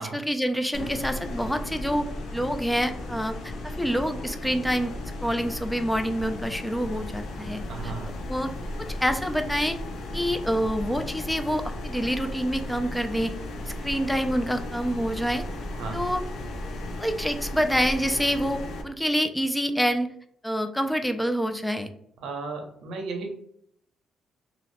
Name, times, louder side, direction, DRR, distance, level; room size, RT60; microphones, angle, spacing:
voice 1, 0.0-2.1 2.3-3.3 3.6-4.9 5.2-7.9 8.3-8.5 9.0-9.8 10.1-13.3 13.6-15.4 15.9-16.2 17.0-20.1 20.4-21.9, equal, 5° left, 7 dB, 0.3 m, -27 dB
sound 1, 0.7-18.8, left 1 dB, 75° left, 0.5 m, -35 dB
voice 2, 7.7-8.1 15.7-16.0 22.2-23.3, right 4 dB, 80° right, 3 dB, 0.6 m, -34 dB
2.7 x 2.0 x 2.9 m, 0.68 s
cardioid pair, 90°, 0 cm